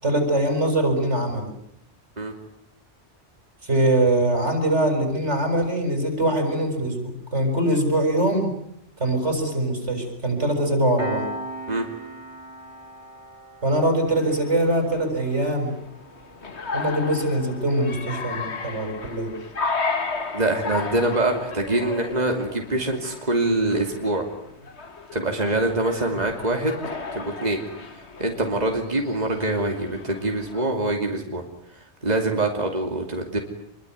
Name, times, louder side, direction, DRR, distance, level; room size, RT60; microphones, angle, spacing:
voice 1, 0.0-1.5 3.6-8.5 9.0-11.3 13.6-15.7 16.7-19.3, right 1 dB, 85° right, 5 dB, 7.2 m, -23 dB
Piano, 11.0-22.1, right 1 dB, 50° right, 3.6 m, -41 dB
sound 1, 14.1-30.7, left 4 dB, 75° left, 2.0 m, -34 dB
voice 2, 20.3-24.3 25.1-26.8 27.1-27.6 28.2-31.4 32.0-33.4, right 2 dB, 35° right, 2 dB, 2.9 m, -24 dB
26.0 x 23.0 x 9.4 m, 0.75 s
omnidirectional pair, 1.2 m